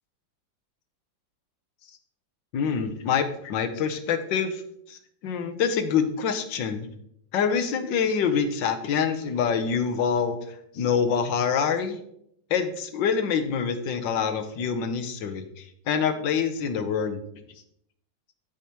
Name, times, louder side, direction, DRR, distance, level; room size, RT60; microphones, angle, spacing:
voice 1, 2.5-4.6 4.9-6.9 7.3-12.0 12.5-17.2, left 6 dB, 75° left, 8 dB, 1.5 m, -26 dB
13.5 x 4.9 x 2.9 m, 0.72 s
omnidirectional pair, 2.1 m